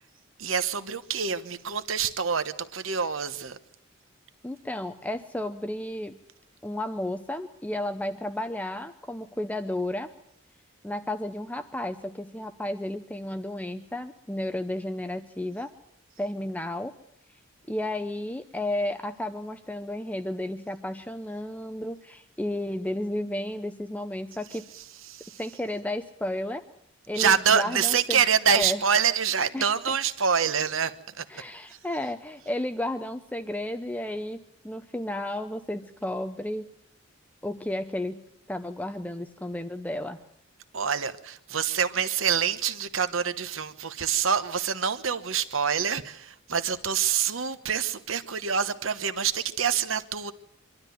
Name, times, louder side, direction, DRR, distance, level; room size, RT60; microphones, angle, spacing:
voice 1, 0.4-3.6 25.1-25.4 27.1-31.4 40.7-50.3, right 7 dB, 75° right, 1.1 m, -26 dB
voice 2, 4.4-6.2 6.6-10.1 10.8-15.7 16.2-16.9 17.7-24.7 25.4-26.6 27.1-28.2 28.5-28.8 29.5-29.9 31.3-36.7 37.4-38.2 38.5-40.2, left 1 dB, 10° left, 0.7 m, -32 dB
24.0 x 12.5 x 9.3 m
head